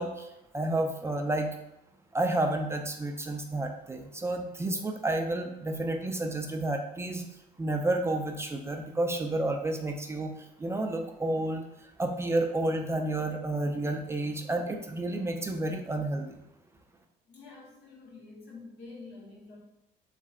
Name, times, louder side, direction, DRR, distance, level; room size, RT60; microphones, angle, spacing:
voice 1, 0.0-1.6 2.1-7.2 7.6-16.4, right 2 dB, 15° right, 4 dB, 0.5 m, -31 dB
voice 2, 17.2-19.6, left 3 dB, 70° left, -4 dB, 1.7 m, -48 dB
4.2 x 3.2 x 3.7 m, 0.85 s
cardioid pair, 110°, 17 cm